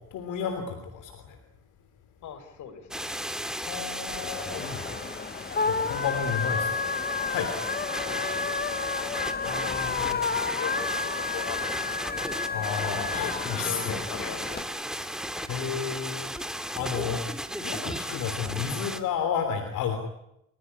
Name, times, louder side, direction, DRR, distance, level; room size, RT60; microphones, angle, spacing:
voice 1, 0.0-1.4 3.6-5.0 5.7-6.8 7.3-7.5 9.4-10.2 12.5-13.9 15.2-16.3 16.7-17.3 17.6-20.0, left 7 dB, 90° left, 6 dB, 3.4 m, -32 dB
voice 2, 2.2-3.1 6.1-6.6 8.0-8.9 9.4-10.3 10.5-12.0 13.5-14.9, left 7 dB, 75° left, 10 dB, 4.8 m, -41 dB
sound 1, 2.9-19.0, equal, ahead, 2.4 m, -35 dB
sound 2, 4.1-14.6, left 5 dB, 30° left, 1.7 m, -31 dB
30.0 x 16.5 x 9.9 m, 0.82 s
cardioid pair, 90°, 30 cm